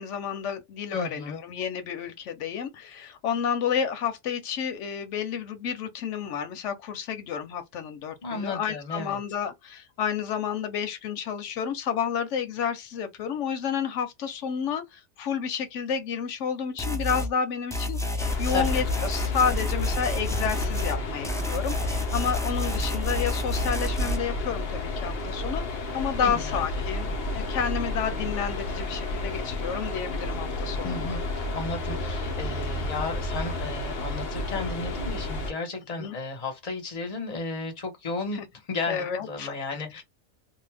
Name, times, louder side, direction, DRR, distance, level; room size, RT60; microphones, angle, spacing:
voice 1, 0.0-31.1 36.0-36.2 38.3-38.4 38.9-39.5, left 7 dB, 90° left, 1.0 m, -30 dB
voice 2, 0.9-1.4 8.2-9.2 18.5-18.8 26.2-26.6 30.8-38.4 38.7-40.0, left 3 dB, 35° left, 1.0 m, -34 dB
sound 1, 16.8-17.3 17.7-21.0 21.2-24.2, left 2 dB, 5° left, 0.4 m, -29 dB
sound 2, 18.2-35.5, left 2 dB, 60° left, 0.8 m, -31 dB
2.7 x 2.1 x 3.3 m
omnidirectional pair, 1.2 m